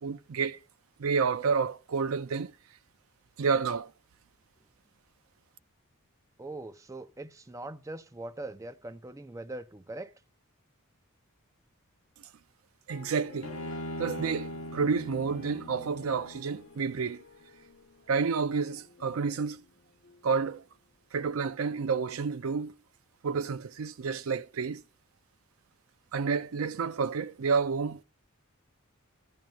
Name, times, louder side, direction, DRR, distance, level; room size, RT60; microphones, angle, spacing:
voice 1, 0.0-0.6 1.0-2.5 3.4-3.9 12.9-13.5 14.0-17.2 18.1-19.6 20.2-20.6 21.1-22.7 23.2-24.8 26.1-28.0, right 5 dB, 70° right, 0.5 m, -30 dB
voice 2, 6.4-10.1, right 2 dB, 15° right, 0.5 m, -41 dB
sound 1, 12.9-20.9, left 3 dB, 55° left, 0.8 m, -54 dB
Bowed string instrument, 13.4-16.7, left 1 dB, 90° left, 1.0 m, -40 dB
14.0 x 10.5 x 2.3 m
head